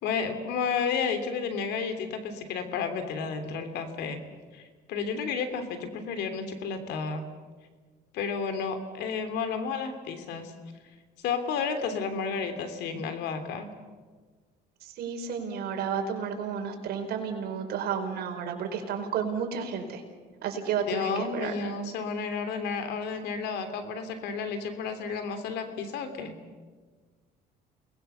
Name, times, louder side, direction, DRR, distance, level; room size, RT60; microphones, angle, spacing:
voice 1, 0.0-4.2 4.5-4.6 4.9-7.2 8.1-10.5 11.2-13.7 20.9-26.3, left 5 dB, 85° left, 8 dB, 3.1 m, -32 dB
voice 2, 14.8-20.0 20.4-21.5, right 6 dB, 70° right, 3 dB, 4.8 m, -32 dB
29.5 x 20.5 x 7.0 m, 1.4 s
cardioid pair, 110°, 17 cm